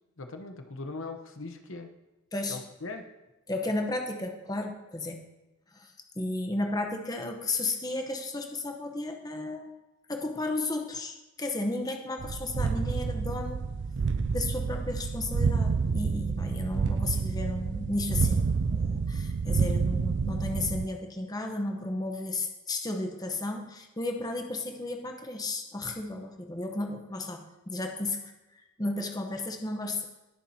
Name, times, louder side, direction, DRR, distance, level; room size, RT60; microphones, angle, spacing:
voice 1, 0.2-1.9 2.5-3.1, left 3 dB, 65° left, 6 dB, 0.9 m, -40 dB
voice 2, 3.5-5.2 5.7-9.7 10.1-13.6 14.3-30.0, left 2 dB, 15° left, 3 dB, 0.9 m, -33 dB
sound 1, 12.2-20.9, right 5 dB, 50° right, 0.4 m, -29 dB
20.0 x 7.2 x 2.8 m, 1.0 s
head